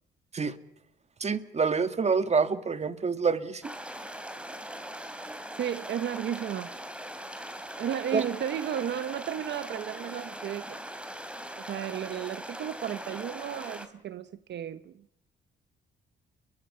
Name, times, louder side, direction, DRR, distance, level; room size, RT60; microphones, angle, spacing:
voice 1, 1.2-3.7 8.1-8.2, right 5 dB, 35° right, 1.7 m, -27 dB
sound 1, 3.6-13.9, right 1 dB, 5° right, 2.9 m, -41 dB
voice 2, 5.6-6.8 7.8-10.8 11.6-14.9, right 10 dB, 60° right, 0.9 m, -34 dB
30.0 x 23.5 x 5.6 m
cardioid pair, 90°, 20 cm